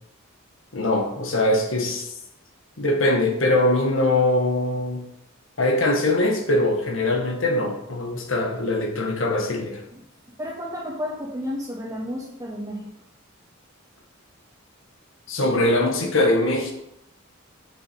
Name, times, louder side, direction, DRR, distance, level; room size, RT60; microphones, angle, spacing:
voice 1, 0.7-2.1 2.8-5.0 5.6-9.8 15.3-16.7, left 1 dB, 70° left, 2 dB, 1.4 m, -22 dB
voice 2, 10.4-12.9, left 1 dB, 15° right, -5 dB, 2.9 m, -32 dB
7.8 x 6.7 x 4.4 m, 0.79 s
head